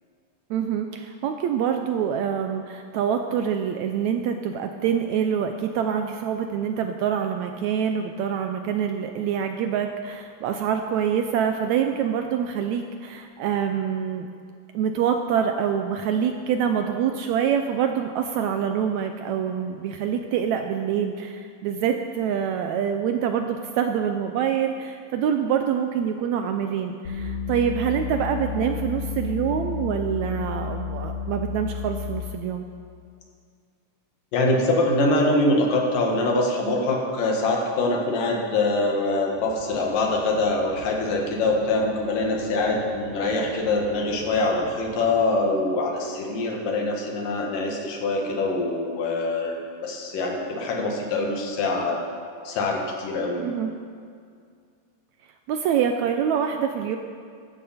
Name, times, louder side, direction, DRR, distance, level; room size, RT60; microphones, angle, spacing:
voice 1, 0.5-14.3 14.7-32.7 53.4-53.7 55.5-57.0, right 8 dB, 80° right, 6 dB, 1.7 m, -25 dB
sound 1, 27.1-32.3, left 5 dB, 55° left, 2.1 m, -31 dB
voice 2, 34.3-52.0 52.4-53.6, left 2 dB, 85° left, 0 dB, 3.3 m, -24 dB
sound 2, 39.3-45.2, right 4 dB, 65° right, 2.3 m, -43 dB
16.0 x 12.5 x 4.3 m, 2.2 s
omnidirectional pair, 3.7 m